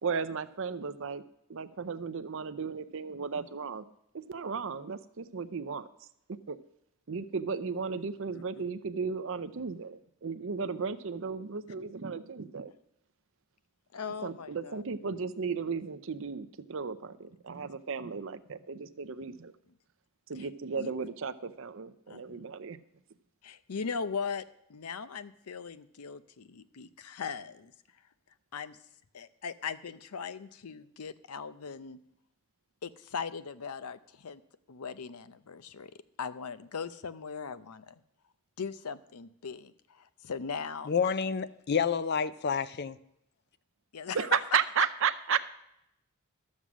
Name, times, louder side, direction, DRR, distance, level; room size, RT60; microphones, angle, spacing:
voice 1, 0.0-1.2 1.5-3.9 4.1-5.9 6.5-6.6 7.1-12.7 14.2-19.5 20.3-22.8 44.1-45.4, right 6 dB, 60° right, 11 dB, 0.6 m, -34 dB
voice 2, 13.9-14.8 20.8-20.9 22.1-22.2 23.4-24.4 24.7-27.7 28.5-28.8 29.1-32.0 32.8-34.4 34.7-35.9 36.2-37.9 38.6-40.9 43.9-44.2, left 5 dB, 90° left, 14 dB, 0.6 m, -39 dB
voice 3, 40.9-43.0, left 6 dB, 50° left, 15 dB, 0.5 m, -29 dB
12.5 x 7.4 x 6.1 m, 0.79 s
head